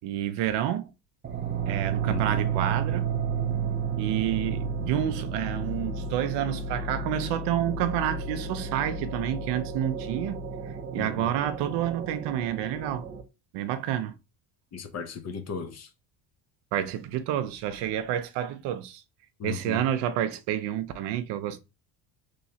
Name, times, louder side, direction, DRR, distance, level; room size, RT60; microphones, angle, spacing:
voice 1, 0.0-0.9 1.7-3.1 4.0-10.4 10.6-13.1 13.5-14.2 16.7-19.0 19.4-21.6, right 11 dB, 70° right, 0.6 m, -29 dB
sound 1, 1.2-13.2, right 5 dB, 25° right, 0.6 m, -32 dB
voice 2, 2.1-2.4 11.0-11.3 14.7-15.9 19.4-19.8, left 5 dB, 35° left, 0.7 m, -36 dB
3.1 x 3.0 x 2.7 m
cardioid pair, 115°, 43 cm